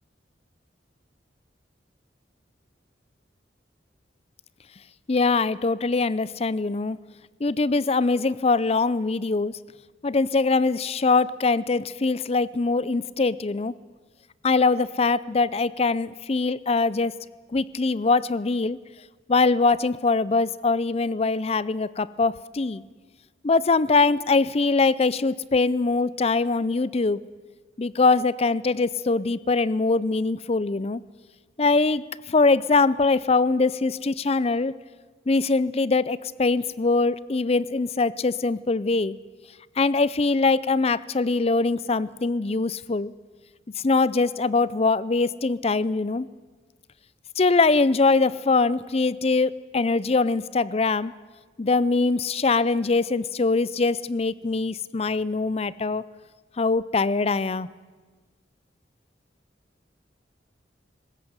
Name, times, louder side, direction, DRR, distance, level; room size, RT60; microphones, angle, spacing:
voice 1, 5.1-7.0 7.4-9.5 10.0-13.7 14.4-17.1 17.5-18.8 19.3-22.8 23.4-27.2 27.8-31.0 31.6-32.0 32.3-34.7 35.3-39.2 39.8-43.1 43.8-46.3 47.4-51.1 51.6-56.0 56.6-57.7, left 3 dB, 35° left, 19 dB, 0.5 m, -22 dB
19.5 x 16.5 x 8.0 m, 1.4 s
head